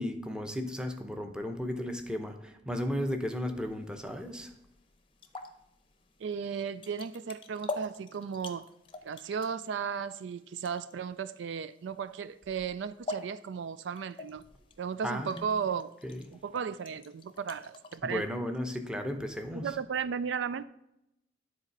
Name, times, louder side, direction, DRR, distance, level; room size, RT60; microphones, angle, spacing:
voice 1, 0.0-4.5 15.0-15.6 16.0-16.2 18.0-19.8, left 1 dB, 5° right, 0.7 m, -35 dB
sound 1, 3.6-18.0, left 2 dB, 30° left, 0.7 m, -47 dB
voice 2, 6.2-8.6 9.0-14.4 14.8-15.9 16.4-18.3 19.5-20.6, right 6 dB, 80° right, 0.4 m, -35 dB
9.8 x 4.1 x 5.4 m
head